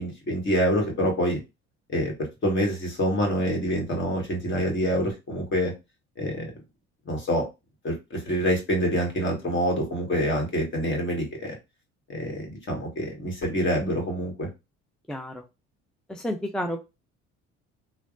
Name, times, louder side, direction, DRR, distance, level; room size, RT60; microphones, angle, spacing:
voice 1, 0.0-1.4 1.9-2.1 2.4-5.7 6.2-6.5 7.0-7.5 7.8-11.5 12.1-14.5, equal, 40° left, 1 dB, 1.5 m, -26 dB
voice 2, 15.1-15.4 16.1-16.8, equal, 5° left, 3 dB, 0.4 m, -30 dB
3.3 x 2.3 x 2.4 m, 0.25 s
supercardioid pair, 85°, 29 cm